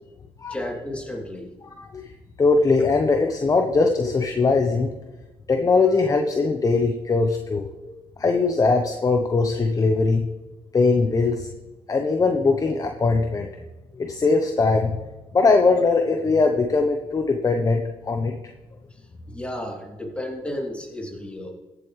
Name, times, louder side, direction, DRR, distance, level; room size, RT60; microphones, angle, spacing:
voice 1, 0.5-1.5 19.3-21.5, left 1 dB, 10° left, -1 dB, 3.1 m, -32 dB
voice 2, 1.8-2.1 2.4-4.9 5.5-10.2 10.7-11.5 11.9-13.5 13.9-14.9 15.3-18.3, left 3 dB, 30° left, 4 dB, 1.0 m, -21 dB
14.5 x 8.0 x 3.3 m, 1.1 s
cardioid pair, 80°, 11 cm